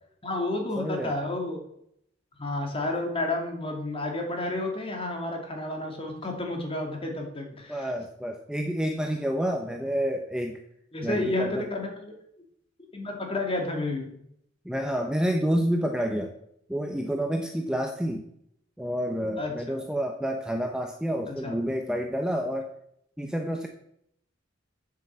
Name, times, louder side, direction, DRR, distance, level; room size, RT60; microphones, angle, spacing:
voice 1, 0.2-1.6 2.4-7.9 10.9-12.1 12.9-14.1 19.4-19.8 21.3-21.5, left 2 dB, 30° left, 2 dB, 2.6 m, -31 dB
voice 2, 0.8-1.1 7.7-10.6 11.0-11.7 14.6-16.3 16.7-18.3 18.8-22.7 23.2-23.7, equal, 5° right, 3 dB, 0.8 m, -29 dB
8.2 x 7.7 x 7.4 m, 0.73 s
head